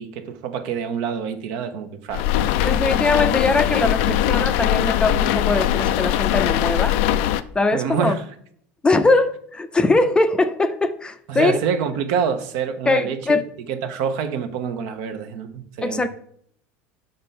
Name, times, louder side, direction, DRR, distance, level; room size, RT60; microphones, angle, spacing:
voice 1, 0.0-2.2 7.7-8.2 11.3-13.4 13.7-16.1, right 7 dB, 65° right, 0.9 m, -26 dB
sound 1, 2.1-7.4, left 12 dB, 70° left, 0.4 m, -21 dB
voice 2, 2.6-7.0 7.5-8.2 8.8-11.6 12.9-13.4 15.8-16.1, left 3 dB, 15° left, 0.5 m, -21 dB
5.5 x 3.9 x 5.6 m
supercardioid pair, 105°, 6 cm